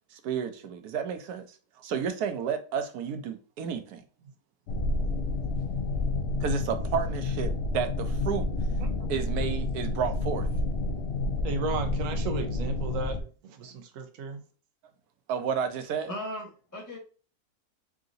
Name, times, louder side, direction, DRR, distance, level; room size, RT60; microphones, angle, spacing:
voice 1, 0.1-1.4 1.8-4.0 6.4-8.4 9.1-10.5 15.3-16.1, right 7 dB, 90° right, 1.2 m, -31 dB
sound 1, 4.7-13.2, left 2 dB, 60° left, 0.7 m, -29 dB
voice 2, 8.8-9.2 11.4-13.2 13.6-14.4, right 4 dB, 65° right, 1.0 m, -34 dB
voice 3, 16.1-17.0, equal, 15° left, 0.9 m, -37 dB
3.8 x 3.7 x 2.5 m
omnidirectional pair, 1.6 m